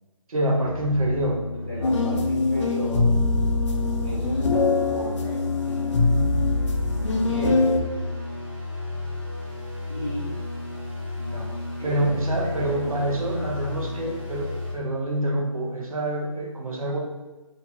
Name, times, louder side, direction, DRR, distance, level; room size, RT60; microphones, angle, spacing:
voice 1, 0.3-1.7 11.8-17.0, right 1 dB, 85° right, 0 dB, 0.7 m, -26 dB
sound 1, 0.6-14.7, left 2 dB, 35° right, 0.8 m, -33 dB
voice 2, 1.6-3.1 4.0-6.6 7.0-7.8 9.9-10.3 11.1-12.1 12.4-13.8, equal, 15° right, -10 dB, 0.4 m, -36 dB
sound 2, 1.8-7.8, left 3 dB, 60° left, 0.4 m, -23 dB
2.6 x 2.3 x 2.9 m, 1.2 s
figure-of-eight pair, 170°, 18 cm